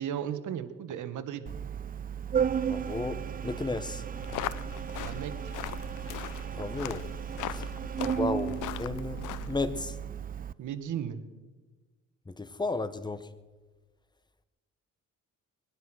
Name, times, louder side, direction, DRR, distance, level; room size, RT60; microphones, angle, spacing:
voice 1, 0.0-1.5 5.0-5.5 10.6-11.2, right 9 dB, 75° right, 11 dB, 1.3 m, -35 dB
Organ, 1.5-10.5, right 8 dB, 30° right, 0.4 m, -34 dB
voice 2, 2.6-4.0 6.5-7.1 7.5-7.7 8.0-10.0 12.3-13.3, left 3 dB, 15° left, 12 dB, 1.0 m, -34 dB
sound 1, 4.1-9.7, left 13 dB, 85° left, 0.7 m, -40 dB
21.0 x 10.5 x 6.2 m, 1.3 s
cardioid pair, 90°, 30 cm